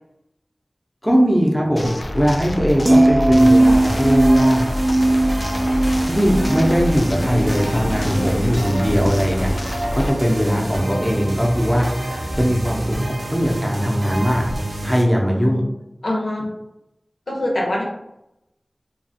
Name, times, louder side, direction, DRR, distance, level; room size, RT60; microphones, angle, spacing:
voice 1, 1.0-4.6 6.0-14.5 14.8-15.6, equal, 5° left, -2 dB, 0.7 m, -20 dB
sound 1, 1.8-10.1, left 1 dB, 55° left, 0.3 m, -27 dB
sound 2, 2.8-9.1 9.5-9.8, right 1 dB, 30° right, 0.4 m, -18 dB
sound 3, 3.4-15.0, right 1 dB, 85° right, 0.5 m, -28 dB
voice 2, 8.2-8.6 10.5-11.2 15.1-15.7 16.0-16.5 17.3-17.8, left 1 dB, 80° left, -3 dB, 0.7 m, -26 dB
2.5 x 2.3 x 2.7 m, 0.86 s
wide cardioid pair, 45°, 0 cm